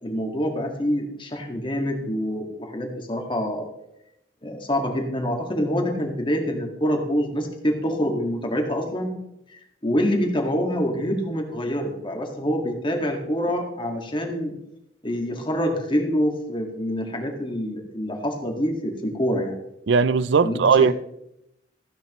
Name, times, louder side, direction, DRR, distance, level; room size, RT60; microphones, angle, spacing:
voice 1, 0.0-3.6 4.4-9.1 9.5-14.5 15.0-19.6 20.4-20.9, equal, 30° left, 1.9 m, -26 dB
voice 2, 19.9-20.9, right 5 dB, 85° right, 0.5 m, -18 dB
15.0 x 10.0 x 3.1 m
head